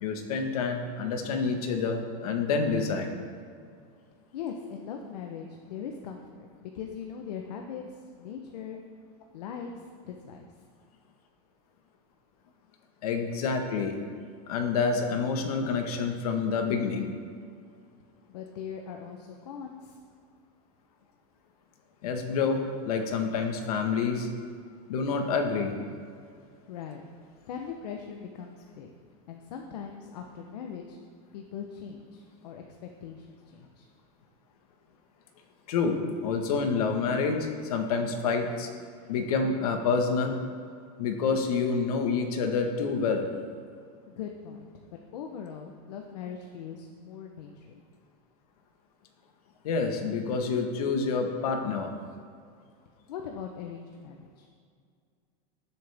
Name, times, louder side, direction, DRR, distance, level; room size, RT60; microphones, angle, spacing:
voice 1, 0.0-3.1 13.0-14.0 14.5-17.1 22.0-24.3 24.9-25.7 35.7-38.7 39.1-40.4 41.0-43.3 49.6-51.9, left 5 dB, 65° left, 4 dB, 1.6 m, -28 dB
voice 2, 4.3-6.5 6.7-8.8 9.3-10.4 18.3-20.0 26.7-27.0 27.5-28.9 29.3-31.0 31.3-33.3 33.5-33.9 44.1-44.7 45.1-47.8 53.1-54.4, left 7 dB, 85° left, 2 dB, 1.1 m, -40 dB
19.0 x 7.7 x 3.6 m, 2.2 s
supercardioid pair, 180°, 20 cm